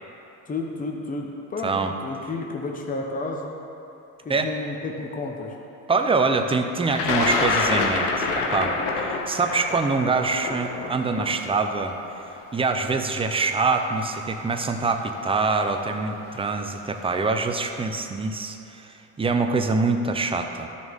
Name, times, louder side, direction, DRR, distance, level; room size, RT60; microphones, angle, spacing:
voice 1, 0.4-3.6 4.2-5.6, left 3 dB, 20° left, 1 dB, 1.0 m, -31 dB
voice 2, 5.9-12.0 12.5-20.7, right 4 dB, 15° right, 6 dB, 0.6 m, -24 dB
Thunder, 6.9-12.9 13.8-13.9 15.0-15.3 15.6-16.1, left 4 dB, 75° left, 1.2 m, -27 dB
12.5 x 6.3 x 3.7 m, 2.9 s
supercardioid pair, 95°, 40 cm